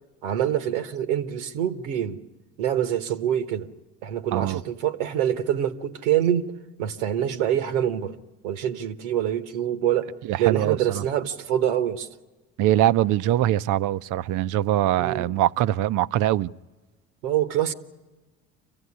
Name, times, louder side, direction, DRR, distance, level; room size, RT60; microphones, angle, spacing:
voice 1, 0.2-2.2 2.6-3.7 4.0-6.5 6.8-8.2 8.4-10.1 10.4-12.1 15.0-15.3 17.2-17.7, right 10 dB, 85° right, 1.4 m, -25 dB
voice 2, 4.3-4.6 10.2-11.0 12.6-16.5, right 13 dB, 60° right, 0.7 m, -23 dB
26.0 x 15.5 x 9.8 m
supercardioid pair, 80°, 35 cm